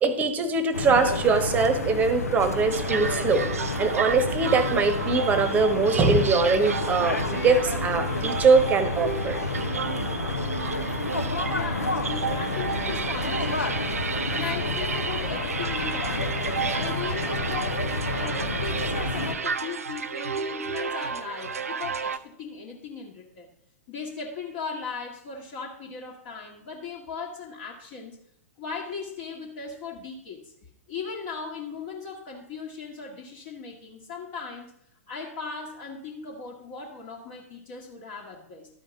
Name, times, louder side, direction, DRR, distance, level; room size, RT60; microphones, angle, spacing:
voice 1, 0.0-9.4, right 4 dB, 20° right, 12 dB, 1.0 m, -22 dB
sound 1, 0.7-19.3, left 2 dB, 80° left, 1.0 m, -30 dB
sound 2, 2.7-22.2, right 6 dB, 70° right, 0.5 m, -33 dB
voice 2, 11.4-23.5 23.9-28.2 28.6-30.5 30.9-34.7 35.1-38.7, left 5 dB, 40° left, -2 dB, 1.4 m, -38 dB
12.0 x 5.1 x 5.1 m, 0.73 s
figure-of-eight pair, 105°, 8 cm